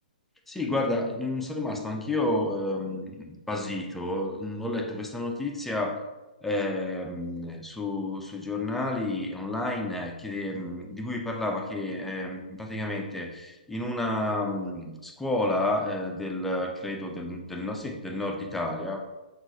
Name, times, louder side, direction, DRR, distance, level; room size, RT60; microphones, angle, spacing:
voice 1, 0.5-6.1 6.4-19.1, left 2 dB, 5° left, 1 dB, 0.3 m, -30 dB
3.7 x 2.3 x 2.7 m, 1.1 s
hypercardioid pair, 130°, 5 cm